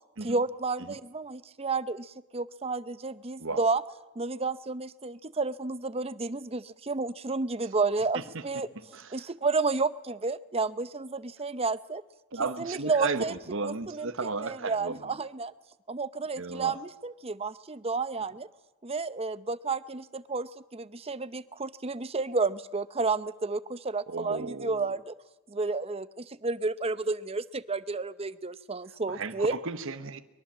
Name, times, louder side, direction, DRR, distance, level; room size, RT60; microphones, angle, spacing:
voice 1, 0.2-3.8 4.2-8.7 9.1-12.0 12.6-13.3 13.6-15.5 15.9-18.5 18.8-25.1 25.5-29.5, right 3 dB, 25° right, 14 dB, 0.7 m, -31 dB
voice 2, 8.7-9.2 12.3-15.0 16.4-16.8 24.1-24.9 29.1-30.2, right 4 dB, 60° right, 9 dB, 1.1 m, -34 dB
23.0 x 22.5 x 7.4 m, 1.1 s
head